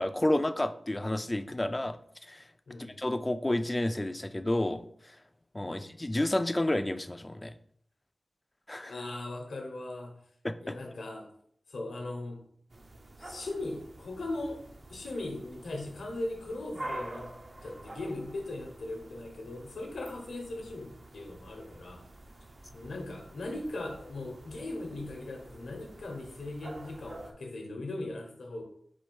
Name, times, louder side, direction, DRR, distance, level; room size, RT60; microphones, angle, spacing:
voice 1, 0.0-2.0 2.3-2.4 3.0-4.8 5.5-7.5 8.7-8.9 10.4-10.8, left 1 dB, 25° left, 10 dB, 0.3 m, -30 dB
voice 2, 8.8-10.2 10.6-11.3 11.7-12.4 13.2-14.6 14.9-17.3 17.6-22.0 22.7-28.6, left 2 dB, 90° left, 2 dB, 0.9 m, -39 dB
sound 1, 12.7-27.3, right 1 dB, 50° right, 0.6 m, -48 dB
4.3 x 2.5 x 4.6 m, 0.64 s
wide cardioid pair, 70°, 0 cm